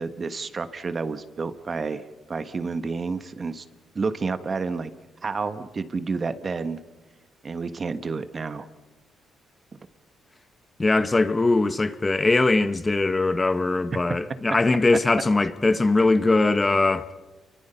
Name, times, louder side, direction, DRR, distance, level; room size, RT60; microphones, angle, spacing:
voice 1, 0.0-3.6 3.9-4.9 5.2-6.8 7.4-8.7 9.7-9.8, right 4 dB, 35° right, 1.3 m, -30 dB
voice 2, 10.8-17.1, left 3 dB, 20° left, 1.0 m, -21 dB
28.0 x 24.0 x 5.7 m
cardioid pair, 90°, 0 cm